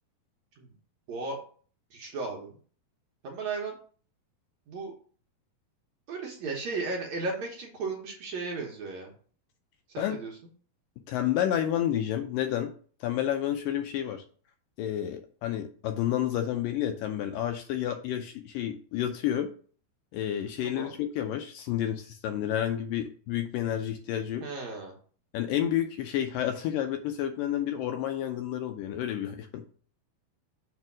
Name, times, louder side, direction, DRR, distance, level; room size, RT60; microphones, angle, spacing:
voice 1, 1.9-2.6 3.2-3.7 4.7-4.9 6.1-9.1 9.9-10.4 20.6-20.9 24.4-25.0, right 3 dB, 65° right, 0 dB, 1.9 m, -35 dB
voice 2, 11.1-12.7 13.0-14.2 14.8-19.5 20.1-24.4 25.3-29.6, left 11 dB, 80° left, 6 dB, 2.1 m, -30 dB
6.7 x 3.5 x 6.0 m, 0.43 s
omnidirectional pair, 4.3 m